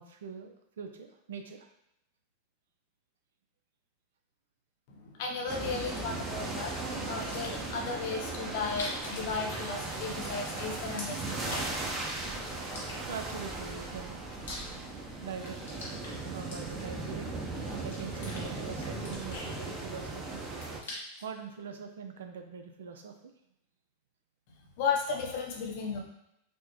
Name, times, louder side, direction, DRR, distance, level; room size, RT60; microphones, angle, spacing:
voice 1, 0.0-1.7 13.1-14.2 15.2-15.6 16.3-17.3 17.8-20.5 21.2-23.3, right 6 dB, 75° right, 5 dB, 0.4 m, -43 dB
voice 2, 4.9-6.7 7.1-11.6 24.8-26.0, left 5 dB, 60° left, 1 dB, 0.7 m, -35 dB
sound 1, 5.5-20.8, right 2 dB, 20° right, 0.7 m, -37 dB
sound 2, 7.2-7.7 8.6-10.2 10.5-11.9 12.6-13.4 14.0-15.1 15.4-17.0 17.5-18.4 18.8-20.1 20.4-21.3, left 2 dB, 85° left, 1.1 m, -44 dB
4.2 x 2.1 x 3.0 m, 0.79 s
hypercardioid pair, 100°, 0 cm